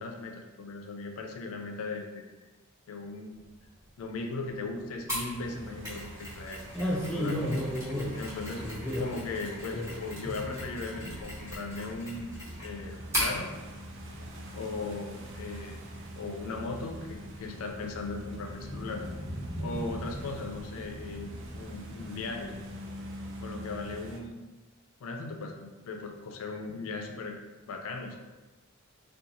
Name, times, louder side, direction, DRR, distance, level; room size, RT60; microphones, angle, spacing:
voice 1, 0.0-2.2 2.9-3.4 4.0-7.4 8.2-8.7 9.0-12.3 12.6-13.5 14.5-15.8 16.1-19.0 19.6-21.3 21.6-22.5 23.4-24.4 25.0-27.4 27.7-28.2, left 3 dB, 75° left, 3 dB, 0.3 m, -38 dB
Thunder, 3.3-22.7, equal, 30° right, 1.3 m, -47 dB
Mechanisms, 5.1-13.4, equal, 15° right, 1.1 m, -38 dB
sound 1, 5.2-24.2, equal, 60° right, 0.4 m, -44 dB
voice 2, 6.7-8.2 8.6-9.2 9.7-10.0 10.2-10.4, equal, 5° left, -5 dB, 0.5 m, -32 dB
2.5 x 2.2 x 2.8 m, 1.2 s
head